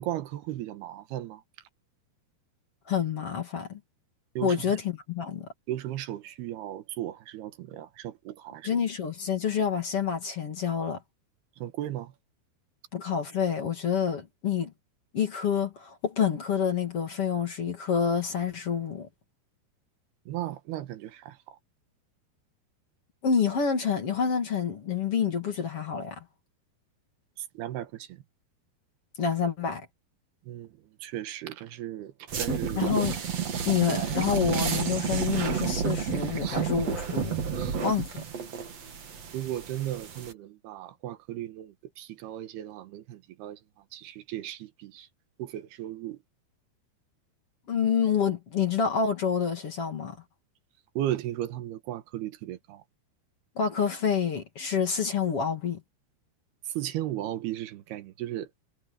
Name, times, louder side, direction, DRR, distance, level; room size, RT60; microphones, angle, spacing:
voice 1, 0.0-1.4 4.4-4.8 5.7-8.7 11.6-12.1 20.3-21.6 27.4-28.2 30.4-32.9 35.4-35.5 36.4-36.6 37.6-37.8 39.3-45.1 45.4-46.2 50.9-52.8 56.6-58.6, right 13 dB, 85° right, 3.3 m, -36 dB
voice 2, 2.9-3.8 4.4-5.5 8.6-11.0 12.9-14.7 15.1-19.1 23.2-26.2 29.2-29.9 32.8-33.2 33.6-37.4 37.8-38.2 47.7-50.2 53.6-55.8, left 7 dB, 40° left, 2.8 m, -28 dB
sound 1, 32.3-40.3, right 6 dB, 45° right, 3.0 m, -31 dB
omnidirectional pair, 4.5 m